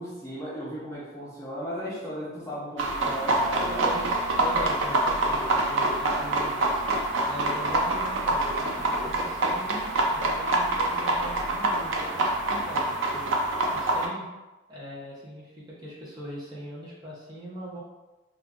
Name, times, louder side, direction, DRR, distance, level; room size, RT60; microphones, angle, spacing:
voice 1, 0.0-3.8, equal, 15° left, -8 dB, 0.7 m, -36 dB
sound 1, 2.8-14.1, right 2 dB, 85° right, 0.5 m, -26 dB
voice 2, 4.4-6.5 7.2-13.4 13.7-14.3 14.7-17.8, right 1 dB, 20° right, -7 dB, 0.8 m, -40 dB
2.6 x 2.4 x 3.4 m, 1.1 s
head